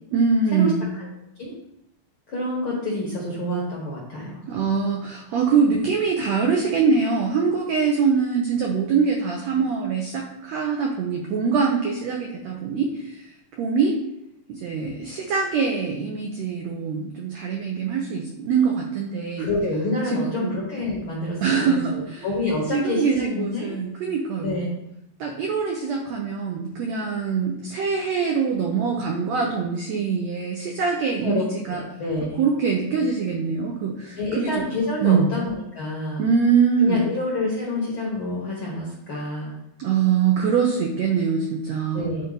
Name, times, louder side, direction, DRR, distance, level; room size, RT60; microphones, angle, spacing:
voice 1, 0.1-0.9 4.5-13.3 13.6-14.0 14.5-19.5 20.1-20.5 21.4-22.3 22.7-24.6 25.2-31.8 32.4-34.6 35.0-35.3 36.2-37.1 39.8-42.1, right 5 dB, 85° right, 0 dB, 1.5 m, -23 dB
voice 2, 2.3-4.4 19.4-23.7 24.4-24.7 31.2-32.4 34.2-36.3 36.8-39.5 41.9-42.3, left 2 dB, 60° left, -4 dB, 1.3 m, -27 dB
9.7 x 4.1 x 3.9 m, 0.85 s
omnidirectional pair, 4.0 m